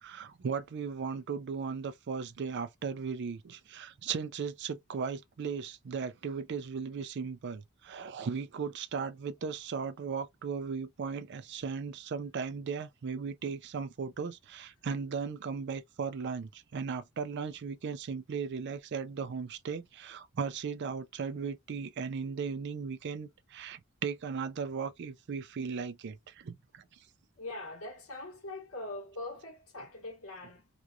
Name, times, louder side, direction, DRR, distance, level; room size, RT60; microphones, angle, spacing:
voice 1, 0.0-26.8, right 5 dB, 55° right, 0.4 m, -37 dB
voice 2, 27.4-30.7, left 2 dB, 90° left, 1.3 m, -42 dB
3.0 x 2.3 x 2.3 m
head